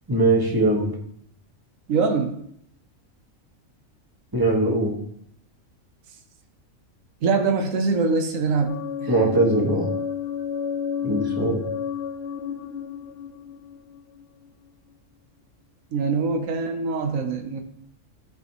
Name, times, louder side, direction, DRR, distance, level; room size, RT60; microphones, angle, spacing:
voice 1, 0.1-0.9 4.3-5.0 9.1-9.9 11.0-11.6, right 2 dB, 15° right, -3 dB, 1.5 m, -21 dB
voice 2, 1.9-2.3 7.2-9.1 15.9-17.6, right 4 dB, 80° right, 5 dB, 1.2 m, -23 dB
sound 1, 8.7-14.5, left 8 dB, 55° left, 1.1 m, -31 dB
13.0 x 4.7 x 3.0 m, 0.68 s
omnidirectional pair, 1.4 m